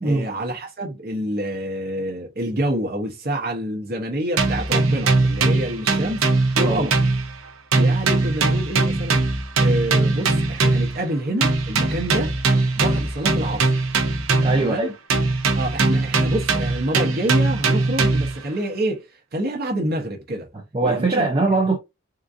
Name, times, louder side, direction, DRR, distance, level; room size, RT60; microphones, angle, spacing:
voice 1, 0.0-6.3 6.5-7.0 7.7-9.2 9.6-12.3 12.7-13.7 14.6-14.9 15.5-20.5 20.8-21.3, right 1 dB, 45° right, 0.8 m, -27 dB
sound 1, 4.4-7.5 7.7-11.0 11.4-14.7 15.1-18.4, right 3 dB, 75° right, 0.7 m, -20 dB
voice 2, 14.4-14.9 20.5-21.8, right 3 dB, 25° right, 0.5 m, -21 dB
3.8 x 2.5 x 2.5 m
head